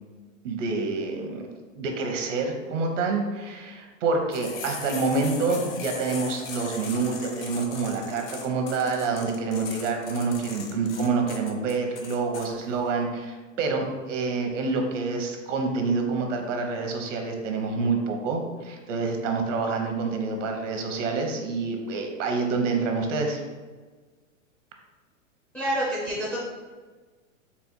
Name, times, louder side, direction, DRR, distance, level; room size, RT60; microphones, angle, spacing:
voice 1, 0.4-23.4, right 4 dB, 65° right, 3 dB, 0.9 m, -27 dB
sound 1, 4.3-12.5, left 5 dB, 75° left, 0.9 m, -39 dB
voice 2, 25.5-26.4, equal, 5° left, -9 dB, 0.4 m, -27 dB
4.1 x 2.1 x 4.3 m, 1.4 s
hypercardioid pair, 135°, 40 cm